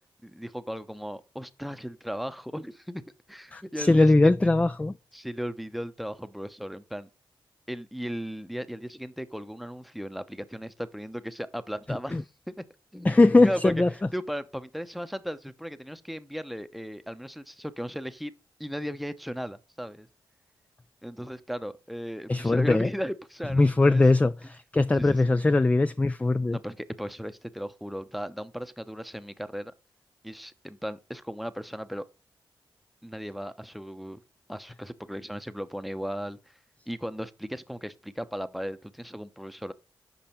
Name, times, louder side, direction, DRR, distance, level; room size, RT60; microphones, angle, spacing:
voice 1, 0.2-4.5 5.1-7.1 7.7-12.2 12.5-12.6 12.9-13.2 13.4-13.7 14.1-18.3 18.6-20.1 21.0-24.0 25.0-25.2 26.5-29.7 30.2-32.0 33.0-34.2 34.5-36.5 36.9-39.7, equal, ahead, 0.7 m, -36 dB
voice 2, 3.5-4.9 12.1-12.2 13.0-13.9 22.3-22.9 23.5-26.6, left 2 dB, 15° left, 0.3 m, -21 dB
7.1 x 5.3 x 4.4 m
cardioid pair, 55°, 9 cm